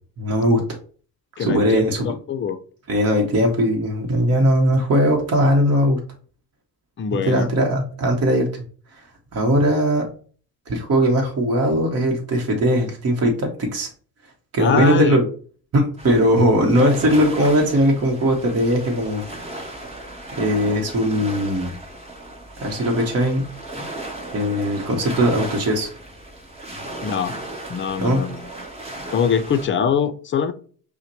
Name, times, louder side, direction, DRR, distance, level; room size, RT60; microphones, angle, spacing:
voice 1, 0.2-0.6 1.4-2.1 2.9-6.0 7.3-8.5 9.3-10.1 10.7-13.9 14.5-15.2 15.7-19.2 20.4-21.7 22.6-23.4 24.3-25.9 28.0-28.2, equal, 40° right, 0 dB, 1.0 m, -19 dB
voice 2, 1.4-2.6 7.0-7.5 14.6-15.2 27.0-27.3 27.7-28.5 29.1-30.5, left 7 dB, 30° left, 10 dB, 0.5 m, -23 dB
sound 1, 16.0-29.7, right 1 dB, 15° right, 1.2 m, -35 dB
5.6 x 2.2 x 3.0 m, 0.43 s
cardioid pair, 90°, 38 cm